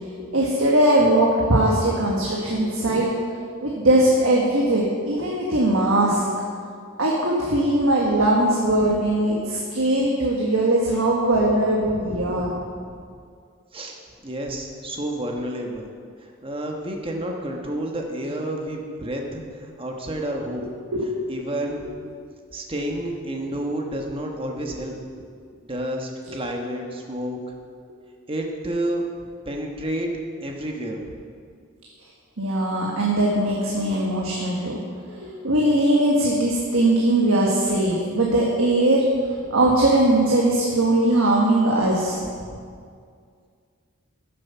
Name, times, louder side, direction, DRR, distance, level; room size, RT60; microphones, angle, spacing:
voice 1, 0.3-3.2 3.6-6.2 7.0-12.5 20.9-21.1 26.3-26.4 32.4-34.8 35.1-39.0 39.5-42.2, right 1 dB, 75° right, -3 dB, 1.5 m, -20 dB
voice 2, 11.8-13.0 13.7-13.9 14.2-15.9 16.2-20.6 21.3-21.9 22.5-24.9 25.6-27.4 28.3-29.0 29.5-30.1 30.4-31.1 39.5-39.6 42.4-42.7, right 1 dB, 25° right, 1 dB, 1.2 m, -30 dB
13.0 x 7.6 x 5.6 m, 2.2 s
head